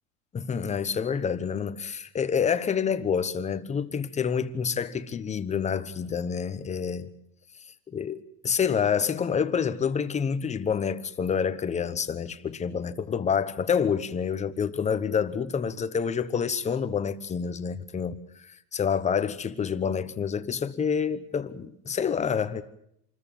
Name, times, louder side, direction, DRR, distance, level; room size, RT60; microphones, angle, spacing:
voice 1, 0.3-7.1 7.9-18.2 18.4-22.6, left 7 dB, 15° left, 1.0 m, -28 dB
27.0 x 14.0 x 9.2 m
supercardioid pair, 140°, 48 cm